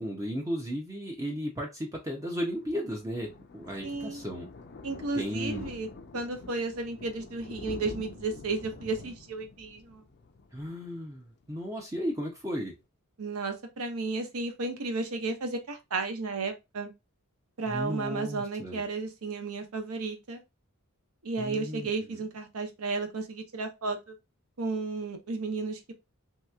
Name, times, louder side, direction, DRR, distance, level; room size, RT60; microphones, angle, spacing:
voice 1, 0.0-4.5 5.1-5.7 10.5-12.7 17.7-18.8 21.4-22.2, equal, 15° right, 0.6 m, -35 dB
Thunder, 2.2-11.6 11.9-12.1 12.4-12.5 12.7-12.8, left 3 dB, 50° left, 0.4 m, -47 dB
voice 2, 3.8-4.2 4.8-5.9 6.1-10.0 13.2-16.9 17.6-20.4 21.2-24.1 24.6-25.9, right 3 dB, 70° right, 0.8 m, -33 dB
3.2 x 2.9 x 2.3 m
head